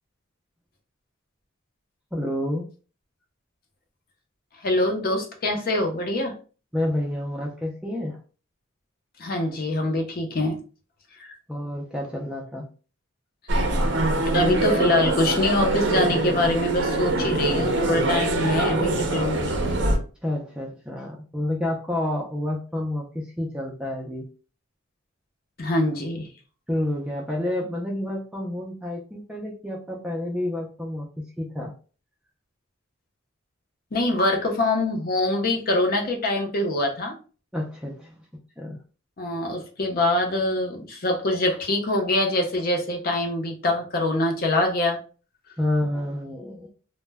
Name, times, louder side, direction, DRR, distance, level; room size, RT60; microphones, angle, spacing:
voice 1, 2.1-2.7 6.7-8.2 11.5-12.7 20.2-24.2 26.7-31.7 37.5-38.1 38.6-38.8 45.6-46.7, left 1 dB, 5° right, -1 dB, 0.3 m, -29 dB
voice 2, 4.6-6.3 9.2-10.6 11.2-11.4 14.3-19.5 25.6-26.3 33.9-37.1 39.2-45.0, left 2 dB, 45° left, 2 dB, 0.6 m, -24 dB
sound 1, 13.5-20.0, right 2 dB, 55° right, 0.5 m, -24 dB
2.1 x 2.1 x 3.3 m, 0.37 s
head